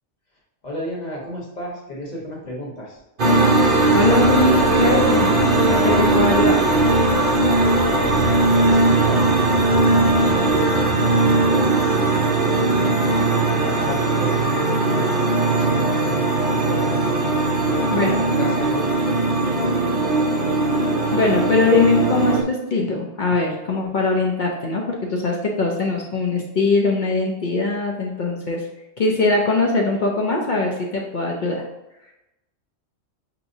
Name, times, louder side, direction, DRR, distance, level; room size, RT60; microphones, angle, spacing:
voice 1, 0.6-3.0 7.4-9.4 10.1-13.0 13.3-17.0 17.6-18.1 18.4-20.1, equal, 35° left, -3 dB, 1.1 m, -34 dB
sound 1, 3.2-22.4, right 2 dB, 50° right, 0.7 m, -19 dB
sound 2, 3.3-14.1, left 1 dB, 80° left, 1.1 m, -33 dB
voice 2, 3.9-5.3 5.7-7.0 17.9-18.2 21.1-28.6 29.0-31.6, left 3 dB, 55° left, 0 dB, 0.6 m, -21 dB
5.9 x 2.9 x 2.6 m, 0.95 s
omnidirectional pair, 1.3 m